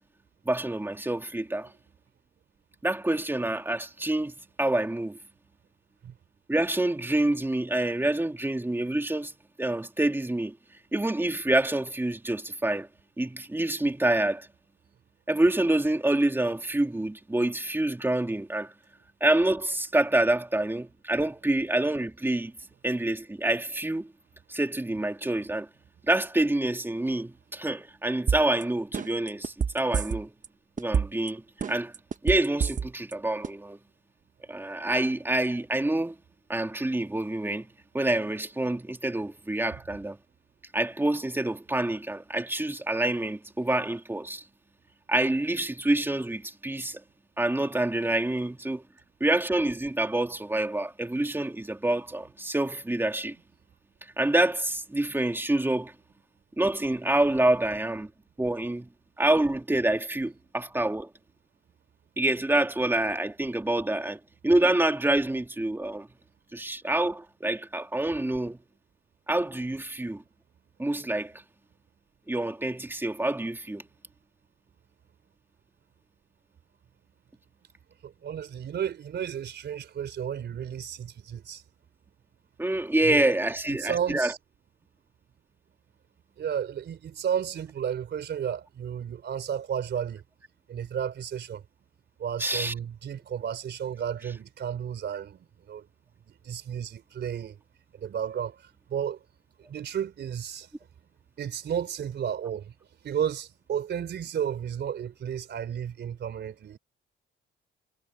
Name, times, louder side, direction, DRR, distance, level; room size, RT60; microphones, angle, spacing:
voice 1, 0.5-1.7 2.8-5.2 6.5-9.3 9.6-10.6 10.9-12.9 13.2-14.5 15.3-18.7 19.2-22.5 22.8-24.1 24.5-25.7 26.1-30.3 30.8-31.9 32.2-33.8 34.5-36.1 36.5-37.7 37.9-40.2 40.7-44.4 45.1-47.0 47.4-48.8 49.2-53.4 54.2-55.9 56.6-58.1 58.4-58.9 59.2-61.1 62.2-66.1 66.5-68.6 69.3-70.2 70.8-71.4 72.3-73.8 82.6-84.3 92.4-92.7, right 1 dB, 10° right, 2.7 m, -27 dB
sound 1, 28.3-28.6 28.9-30.5 30.8-31.3 31.6-33.1 33.4-33.5, right 6 dB, 40° right, 1.2 m, -27 dB
voice 2, 78.0-81.6 83.0-83.2 83.7-84.4 86.4-90.2 90.7-91.6 92.2-95.9 96.3-97.6 97.9-99.2 99.6-100.7 101.4-102.7 103.0-106.8, right 8 dB, 60° right, 3.9 m, -33 dB
cardioid pair, 90°, 20 cm